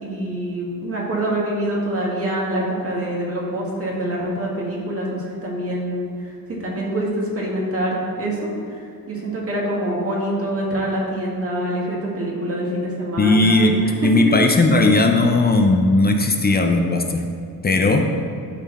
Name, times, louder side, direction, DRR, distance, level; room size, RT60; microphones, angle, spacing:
voice 1, 0.0-6.3 6.6-8.4 9.1-14.1, right 1 dB, 40° right, -4 dB, 2.1 m, -25 dB
voice 2, 13.2-17.3 17.6-18.1, left 2 dB, 25° left, 4 dB, 0.5 m, -17 dB
12.5 x 4.3 x 4.2 m, 2.4 s
wide cardioid pair, 145°, 37 cm